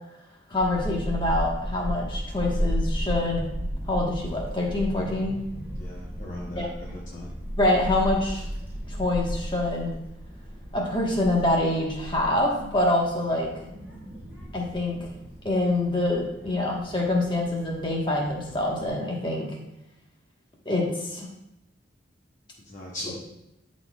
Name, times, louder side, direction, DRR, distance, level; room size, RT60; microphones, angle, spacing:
voice 1, 0.5-3.4 3.9-5.4 6.6-6.7 7.6-8.4 8.9-9.9 10.7-13.5 14.5-15.1 15.4-19.5 20.6-21.3, left 1 dB, 25° left, -2 dB, 1.3 m, -25 dB
Child speech kid speaking / Wind, 0.5-18.9, equal, 10° right, 1.6 m, -34 dB
voice 2, 5.8-7.3 22.7-23.1, left 1 dB, 40° left, -4 dB, 0.8 m, -38 dB
12.0 x 4.3 x 2.3 m, 0.86 s
head